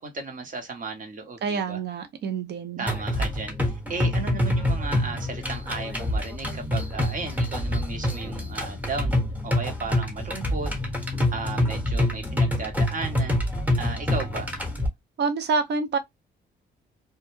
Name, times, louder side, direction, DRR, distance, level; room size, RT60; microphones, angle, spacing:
voice 1, 0.0-1.8 2.8-13.4 13.8-14.5, right 3 dB, 40° right, 1.0 m, -35 dB
voice 2, 1.4-2.9 15.2-16.0, right 5 dB, 60° right, 0.6 m, -27 dB
sound 1, 2.9-14.9, left 1 dB, 10° right, 1.0 m, -26 dB
2.3 x 2.1 x 3.0 m
cardioid pair, 90°, 20 cm